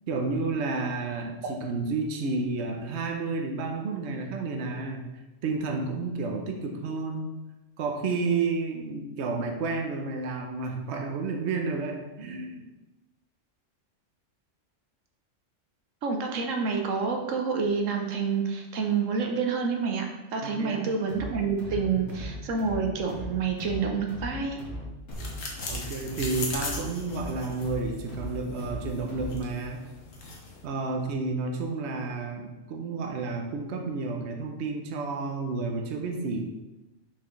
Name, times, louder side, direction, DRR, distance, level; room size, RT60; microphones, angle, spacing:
voice 1, 0.1-5.0 5.4-7.3 7.8-12.6 20.4-20.9 21.9-22.1 25.7-29.8 30.6-36.4, right 3 dB, 65° right, 3 dB, 1.0 m, -31 dB
voice 2, 16.0-24.6, right 5 dB, 80° right, 2 dB, 1.2 m, -28 dB
sound 1, 21.1-29.6, equal, 60° left, 2.0 m, -39 dB
sound 2, 25.1-30.6, left 3 dB, 80° left, 1.4 m, -39 dB
6.0 x 6.0 x 3.2 m, 1.1 s
omnidirectional pair, 1.3 m